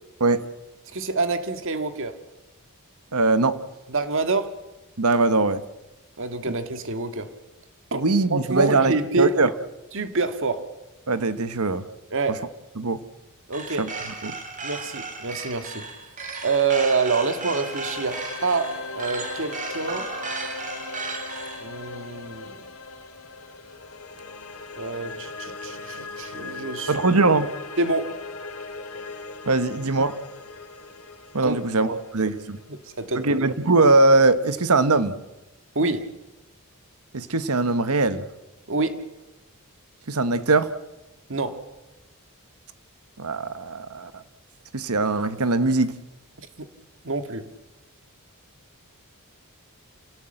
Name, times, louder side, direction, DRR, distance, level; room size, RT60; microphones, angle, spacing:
voice 1, 0.9-2.2 3.9-4.5 6.2-7.3 7.9-8.0 8.3-9.4 9.9-10.7 12.1-12.5 13.5-13.9 14.6-15.9 16.4-20.1 21.6-22.6 24.7-26.9 27.8-28.2 31.4-32.0 32.7-33.5 35.8-36.1 38.7-39.1 41.3-41.6 46.6-46.7 47.0-47.5, right 3 dB, 60° right, 9 dB, 1.8 m, -27 dB
voice 2, 3.1-3.6 5.0-5.6 7.9-9.5 11.1-11.9 12.8-13.0 13.8-13.9 14.2-14.4 26.9-27.5 29.5-30.2 31.3-31.9 32.1-32.6 33.2-35.1 37.1-38.2 40.1-40.7 43.2-44.2 44.7-46.0, right 3 dB, 90° right, 13 dB, 1.3 m, -21 dB
sound 1, 13.5-21.6, right 3 dB, 35° right, 3.0 m, -35 dB
sound 2, 16.3-33.4, left 3 dB, 75° left, 2.5 m, -39 dB
28.0 x 17.0 x 7.9 m, 1.1 s
head